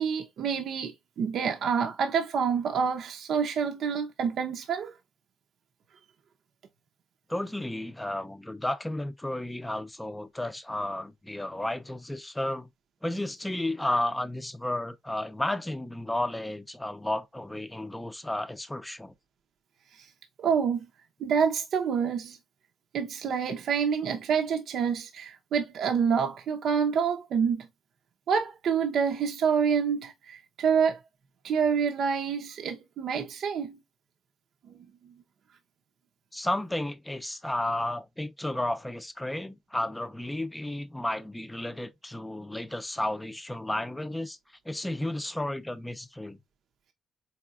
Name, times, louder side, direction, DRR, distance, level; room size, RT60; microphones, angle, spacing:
voice 1, 0.0-4.9 20.4-20.9 21.2-22.4 22.9-27.7 28.3-31.0 31.4-33.8, right 6 dB, 70° right, 0.6 m, -27 dB
voice 2, 7.3-12.7 13.0-19.1 36.3-44.4 44.7-46.4, left 1 dB, 10° left, 0.6 m, -32 dB
4.1 x 3.6 x 2.4 m
cardioid pair, 90°, 0 cm